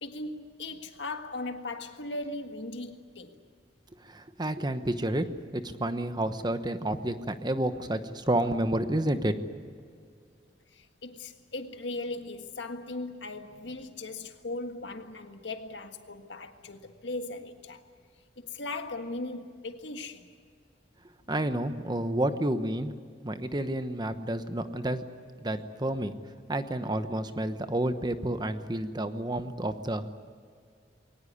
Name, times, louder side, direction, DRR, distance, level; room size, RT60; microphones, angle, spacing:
voice 1, 0.0-3.3 10.7-17.8 18.4-20.3, left 2 dB, 80° left, 1.7 m, -38 dB
voice 2, 4.0-9.3 21.3-23.0 23.2-25.0 25.4-26.1 26.5-30.1, right 1 dB, 25° right, 1.0 m, -30 dB
22.0 x 18.5 x 9.6 m
head